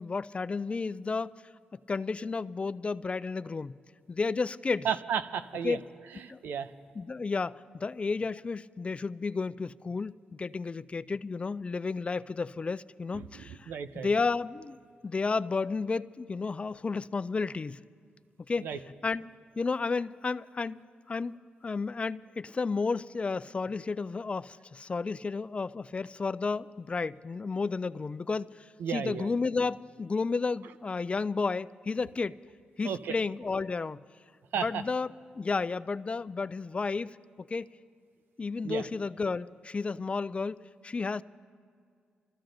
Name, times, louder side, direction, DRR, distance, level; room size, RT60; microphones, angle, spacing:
voice 1, 0.0-1.3 1.7-3.8 4.1-4.9 5.6-5.8 6.3-6.4 7.0-14.8 15.0-17.8 18.5-32.4 32.8-34.0 34.6-37.7 38.4-41.2, left 4 dB, 35° left, 17 dB, 0.4 m, -32 dB
voice 2, 4.8-5.8 6.1-6.7 13.1-14.1 18.6-18.8 28.8-29.3 32.8-33.1 34.5-34.8 38.6-38.8, right 7 dB, 80° right, 11 dB, 0.6 m, -33 dB
25.0 x 14.5 x 3.9 m, 2.2 s
supercardioid pair, 55°, 3 cm